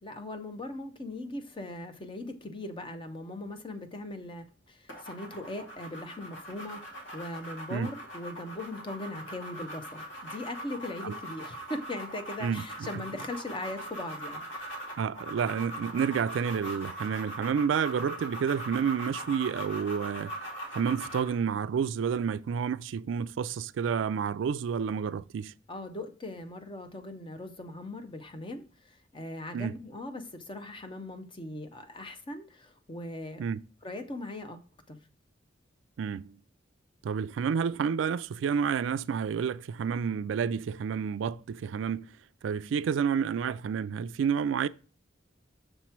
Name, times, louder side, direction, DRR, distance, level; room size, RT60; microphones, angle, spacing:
voice 1, 0.0-14.8 25.7-33.4 33.8-34.6 34.9-35.0, left 2 dB, 25° left, 0.8 m, -40 dB
sound 1, 4.9-21.4, right 1 dB, 80° left, 1.6 m, -41 dB
voice 2, 12.4-12.9 15.0-20.3 20.7-25.5 29.5-29.7 33.4-33.6 36.0-36.3 37.0-42.1 42.4-44.7, right 7 dB, 85° right, 0.3 m, -30 dB
6.7 x 3.0 x 5.6 m
head